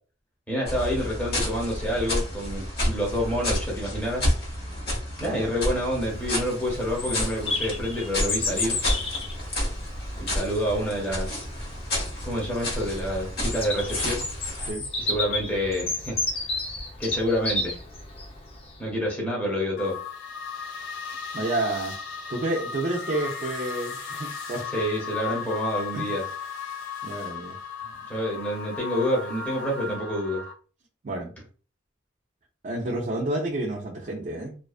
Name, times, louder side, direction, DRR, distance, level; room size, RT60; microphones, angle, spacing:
voice 1, 0.5-4.3 5.2-8.9 10.2-11.5 12.2-14.2 15.0-16.2 17.0-17.8 18.8-19.9 24.7-26.2 28.1-30.4, equal, 10° left, -4 dB, 0.9 m, -28 dB
sound 1, 0.7-14.7, left 1 dB, 55° left, 1.1 m, -30 dB
voice 2, 5.2-5.5 14.6-14.9 21.3-22.0 22.3-24.7 25.9-26.1 27.0-27.6 31.0-31.3 32.6-34.6, right 2 dB, 45° right, -1 dB, 0.4 m, -30 dB
Bird vocalization bird call bird song, 6.0-18.7, left 2 dB, 30° left, 0.5 m, -32 dB
sound 2, 19.8-30.5, left 6 dB, 85° left, 0.8 m, -35 dB
2.5 x 2.3 x 2.3 m, 0.39 s
head